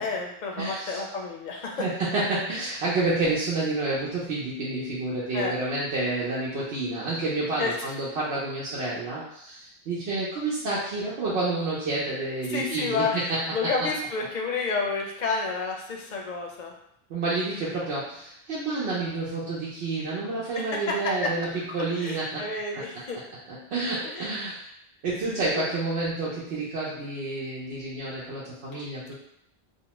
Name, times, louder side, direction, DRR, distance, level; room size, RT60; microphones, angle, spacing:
voice 1, 0.0-1.8 5.3-5.7 7.6-7.8 12.5-16.7 20.5-21.3 22.0-23.2 24.0-24.3 25.3-25.7 28.7-28.8, left 4 dB, 55° left, 0 dB, 0.6 m, -30 dB
voice 2, 0.6-1.0 1.8-13.4 17.1-22.5 22.7-22.8 23.5-24.7 25.0-29.1, right 2 dB, 90° right, -7 dB, 0.9 m, -29 dB
2.7 x 2.1 x 2.9 m, 0.74 s
omnidirectional pair, 1.0 m